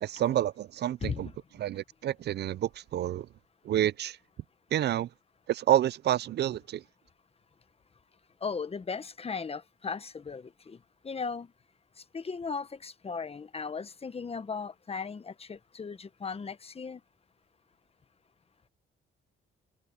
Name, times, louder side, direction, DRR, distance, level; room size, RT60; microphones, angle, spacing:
voice 1, 0.0-1.3 1.6-3.3 3.6-4.2 4.7-5.1 5.5-6.8, right 12 dB, 55° right, 0.5 m, -28 dB
voice 2, 8.4-10.8 11.0-11.5 12.1-17.0, left 5 dB, 30° left, 1.1 m, -37 dB
cardioid pair, 90°, 20 cm